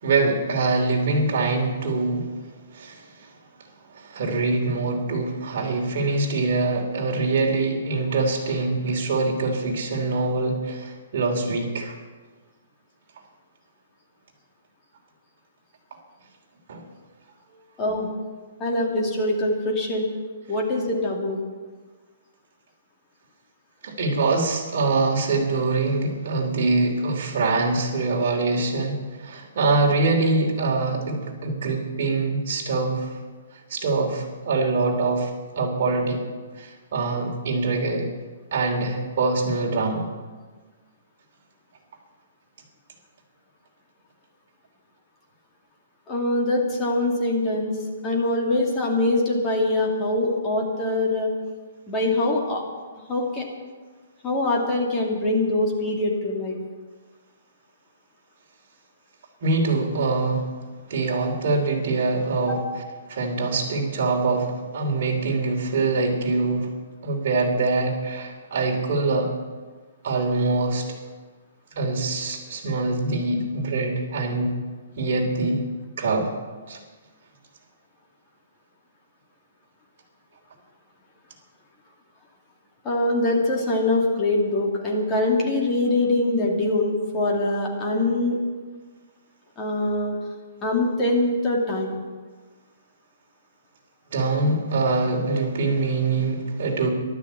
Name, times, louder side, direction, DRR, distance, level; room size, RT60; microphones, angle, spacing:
voice 1, 0.0-2.3 2.7-3.3 3.9-12.0 16.7-16.9 23.8-33.2 33.5-35.3 35.6-36.2 36.6-38.1 38.5-40.1 59.4-60.5 60.9-62.6 63.1-66.7 67.0-69.3 70.0-70.9 71.7-74.5 75.0-75.6 76.0-76.3 76.7-76.8 94.1-96.9, right 3 dB, 45° right, 1 dB, 3.1 m, -24 dB
voice 2, 17.8-18.1 18.6-20.1 20.5-21.4 46.1-47.8 48.0-51.3 51.9-52.6 53.1-53.4 54.2-56.6 62.5-62.6 82.8-88.4 89.6-90.1 90.6-92.0, left 2 dB, 15° left, -1 dB, 2.5 m, -23 dB
13.0 x 12.0 x 8.3 m, 1.4 s
hypercardioid pair, 170°, 0 cm